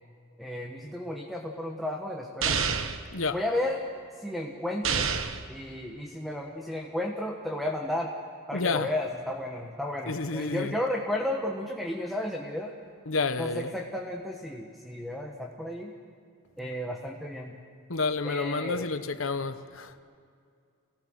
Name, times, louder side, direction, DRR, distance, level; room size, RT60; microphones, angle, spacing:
voice 1, 0.4-2.6 3.3-3.8 4.2-5.1 5.5-8.1 8.5-12.7 13.4-15.9 16.6-17.5 18.2-18.9, left 1 dB, ahead, 1.4 m, -33 dB
sound 1, 2.4-3.0 4.8-5.4, right 6 dB, 70° right, 1.2 m, -27 dB
voice 2, 8.5-8.9 10.1-10.8 13.1-13.7 17.9-19.9, left 3 dB, 70° left, 1.0 m, -29 dB
29.0 x 18.5 x 6.4 m
head